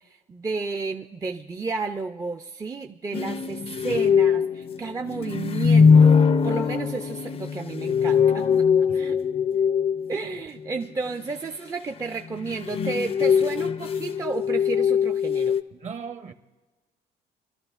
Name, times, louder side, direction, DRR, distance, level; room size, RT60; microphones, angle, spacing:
voice 1, 0.3-6.2 6.4-8.7 8.9-9.2 10.1-15.6, right 4 dB, 20° right, 0.4 m, -32 dB
sound 1, 3.1-10.4 12.3-15.6, left 6 dB, 35° left, 0.4 m, -21 dB
voice 2, 15.7-16.3, right 6 dB, 45° right, 0.9 m, -37 dB
24.0 x 12.5 x 2.4 m
cardioid pair, 110°, 17 cm